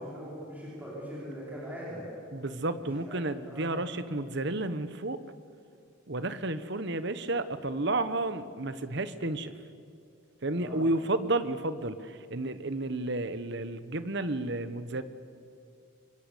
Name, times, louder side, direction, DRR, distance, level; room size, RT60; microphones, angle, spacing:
voice 1, 0.0-2.1 2.8-3.8 10.5-10.9, equal, 10° right, -7 dB, 5.1 m, -41 dB
voice 2, 2.3-5.2 6.1-9.5 10.4-15.0, right 2 dB, 55° right, 12 dB, 1.2 m, -31 dB
26.0 x 23.0 x 8.4 m, 2.4 s
head